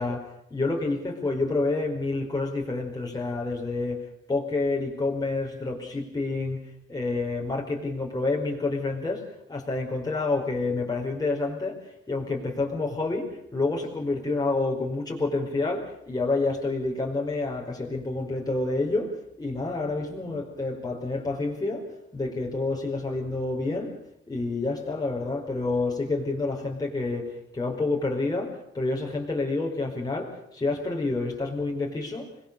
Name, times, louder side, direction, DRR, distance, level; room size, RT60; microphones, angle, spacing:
voice 1, 0.0-19.1 19.4-23.9 24.3-32.3, left 3 dB, 20° left, -1 dB, 4.8 m, -28 dB
26.0 x 20.5 x 6.9 m, 0.75 s
cardioid pair, 90°, 20 cm